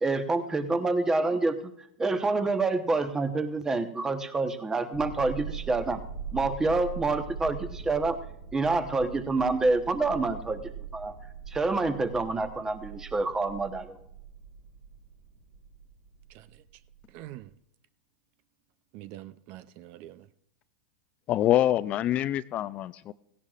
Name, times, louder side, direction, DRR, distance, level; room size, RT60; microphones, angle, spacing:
voice 1, 0.0-1.6 2.0-6.0 6.3-8.2 8.5-11.2 11.5-14.0, right 3 dB, 15° right, 1.1 m, -27 dB
sound 1, 4.9-17.4, right 7 dB, 80° right, 1.8 m, -42 dB
voice 2, 16.3-16.6 17.1-17.5 18.9-20.3, right 14 dB, 50° right, 0.5 m, -45 dB
voice 3, 21.3-23.1, left 13 dB, 35° left, 0.4 m, -25 dB
17.0 x 16.5 x 2.5 m
hypercardioid pair, 115°, 4 cm